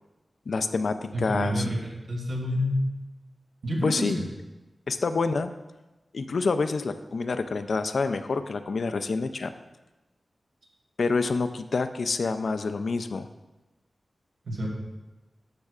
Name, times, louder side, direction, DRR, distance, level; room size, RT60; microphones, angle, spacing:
voice 1, 0.5-1.6 3.8-4.2 4.9-5.5 6.1-9.5 11.0-13.3, left 4 dB, 70° left, 9 dB, 0.4 m, -27 dB
voice 2, 1.1-1.8 2.1-2.8 3.6-4.2 14.4-14.7, equal, 85° right, -3 dB, 2.4 m, -28 dB
12.0 x 6.8 x 2.4 m, 1.1 s
wide cardioid pair, 105°, 0 cm